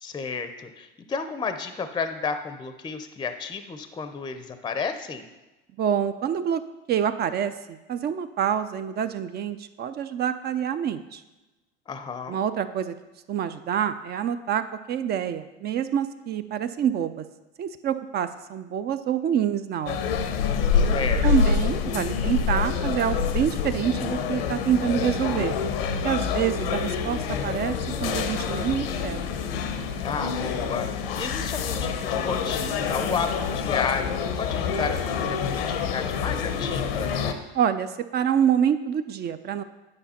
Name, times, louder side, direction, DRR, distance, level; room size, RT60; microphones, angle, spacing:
voice 1, 0.0-5.2 11.9-12.4 20.7-21.2 30.0-37.1, left 5 dB, 15° left, 9 dB, 0.6 m, -32 dB
voice 2, 5.8-6.6 6.9-11.2 12.3-12.9 13.3-14.6 14.9-17.2 17.6-20.0 21.2-25.6 26.0-29.3 37.5-39.6, right 9 dB, 35° right, 11 dB, 0.5 m, -26 dB
sound 1, 19.9-37.3, left 6 dB, 80° left, 0.9 m, -27 dB
9.8 x 5.0 x 4.3 m, 1.1 s
hypercardioid pair, 90°, 29 cm